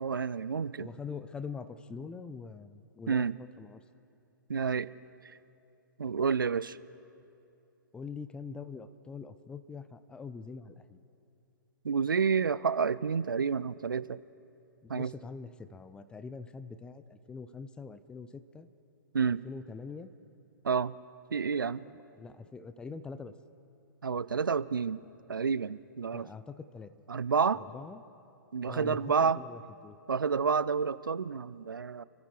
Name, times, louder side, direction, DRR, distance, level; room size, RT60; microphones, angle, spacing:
voice 1, 0.0-0.9 3.1-3.4 4.5-4.9 6.0-6.8 11.8-14.2 14.9-15.1 19.1-19.4 20.6-20.9 21.3-21.8 24.0-25.0 25.3-26.3 27.1-27.6 28.5-29.4 30.1-32.0, right 6 dB, 80° right, 18 dB, 0.4 m, -29 dB
voice 2, 0.8-3.8 7.9-11.0 14.8-18.7 19.2-20.1 21.6-23.3 26.1-26.9 27.7-28.0 28.7-30.0, left 5 dB, 10° left, 13 dB, 0.4 m, -44 dB
29.0 x 14.0 x 3.3 m, 2.7 s
figure-of-eight pair, 125°, 11 cm